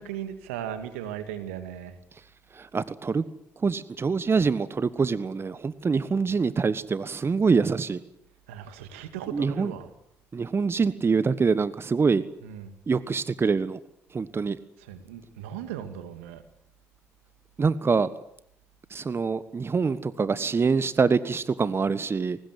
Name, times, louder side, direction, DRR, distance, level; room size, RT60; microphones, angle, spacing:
voice 1, 0.0-2.0 8.5-9.9 12.4-12.7 14.8-16.4, right 10 dB, 85° right, 10 dB, 2.3 m, -37 dB
voice 2, 2.6-3.2 3.6-8.0 9.3-9.7 10.3-12.2 12.9-13.8 14.1-14.6 17.6-18.1 18.9-22.4, right 5 dB, 35° right, 16 dB, 1.3 m, -25 dB
23.0 x 19.5 x 9.7 m, 0.73 s
hypercardioid pair, 50°, 7 cm